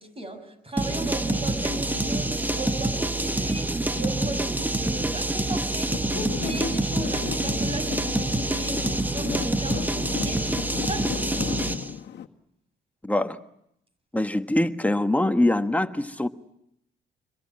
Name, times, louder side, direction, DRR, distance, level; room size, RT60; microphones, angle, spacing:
voice 1, 0.0-10.5 10.8-11.6, right 1 dB, 30° right, 8 dB, 6.4 m, -36 dB
sound 1, 0.8-11.9, right 2 dB, 10° right, 1.0 m, -26 dB
Traffic noise roadway noise / Engine, 5.9-12.3, left 9 dB, 60° left, 1.7 m, -35 dB
voice 2, 13.0-13.4 14.1-16.3, left 1 dB, 5° left, 8 dB, 1.4 m, -23 dB
26.0 x 22.0 x 8.8 m, 0.78 s
cardioid pair, 90°, 20 cm